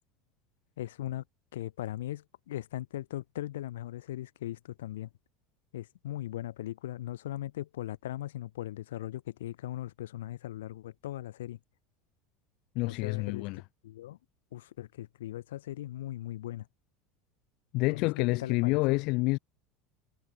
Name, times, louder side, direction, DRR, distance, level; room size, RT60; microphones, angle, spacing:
voice 1, 0.8-1.2 1.5-5.1 5.7-11.6 12.8-14.2 14.5-16.7 17.9-18.1 18.4-19.0, left 14 dB, 80° left, 6.4 m, -39 dB
voice 2, 12.7-13.6 17.7-19.4, left 25 dB, 60° left, 1.4 m, -28 dB
hypercardioid pair, 80°, 0 cm